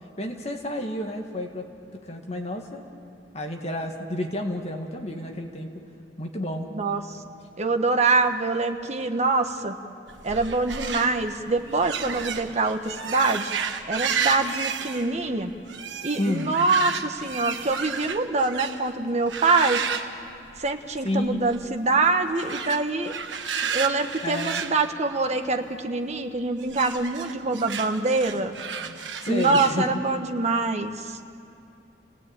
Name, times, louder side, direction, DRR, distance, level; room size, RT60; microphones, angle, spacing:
voice 1, 0.2-1.7 1.9-2.9 3.3-5.7 6.2-6.7 16.2-16.5 21.0-21.5 24.2-24.6 29.2-30.0, left 1 dB, 35° left, 3 dB, 1.9 m, -30 dB
voice 2, 6.7-7.2 7.6-9.8 10.2-13.5 13.9-15.5 16.0-19.8 20.6-23.1 23.6-28.5 29.3-31.2, right 3 dB, 40° right, 6 dB, 1.3 m, -25 dB
sound 1, 10.1-18.9 19.3-21.0 21.2-21.7 22.3-25.7 26.6-29.7, right 6 dB, 80° right, 1.4 m, -32 dB
29.0 x 17.5 x 8.9 m, 2.6 s
head